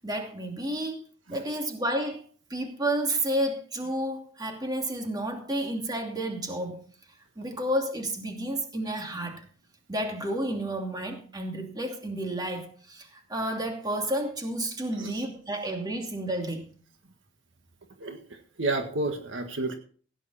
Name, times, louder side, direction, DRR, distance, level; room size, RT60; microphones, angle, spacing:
voice 1, 0.0-1.0 1.3-2.2 2.5-6.8 7.4-9.5 9.9-16.7, right 1 dB, 20° right, 2.7 m, -31 dB
voice 2, 18.0-19.8, right 2 dB, 70° right, 1.7 m, -31 dB
16.5 x 9.7 x 4.3 m
head